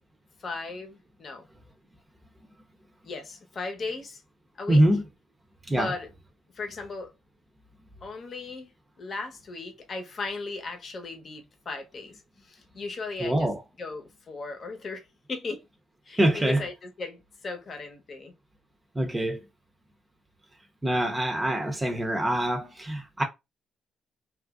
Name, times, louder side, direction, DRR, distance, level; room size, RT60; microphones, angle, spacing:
voice 1, 0.4-1.5 3.0-4.2 4.6-4.9 5.7-6.1 6.5-7.1 8.0-8.7 9.0-12.1 12.4-13.5 13.8-15.6 16.1-18.3, left 3 dB, 45° left, 0.9 m, -37 dB
voice 2, 4.7-5.0 5.7-5.9 13.2-13.6 16.2-16.6 18.9-19.4 20.8-23.2, right 1 dB, 20° right, 0.6 m, -24 dB
3.0 x 2.5 x 2.4 m
cardioid pair, 90°, 0 cm